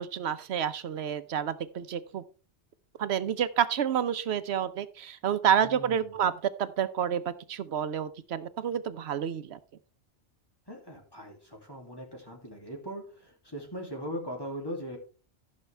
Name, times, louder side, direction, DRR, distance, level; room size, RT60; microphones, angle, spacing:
voice 1, 0.0-2.2 3.0-6.3 6.6-9.6, right 8 dB, 75° right, 13 dB, 1.0 m, -29 dB
voice 2, 5.6-6.1 10.7-15.0, equal, 20° left, 0 dB, 2.6 m, -40 dB
15.0 x 6.4 x 3.4 m, 0.36 s
omnidirectional pair, 1.1 m